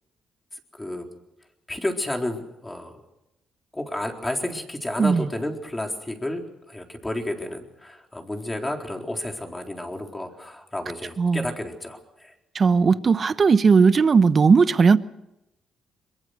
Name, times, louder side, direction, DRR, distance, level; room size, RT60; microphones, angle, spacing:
voice 1, 1.7-3.0 3.7-6.4 6.7-12.3, left 1 dB, 15° left, 4.1 m, -31 dB
voice 2, 11.2-11.5 12.5-15.0, right 5 dB, 40° right, 1.0 m, -17 dB
23.5 x 22.0 x 6.6 m
cardioid pair, 90°, 0 cm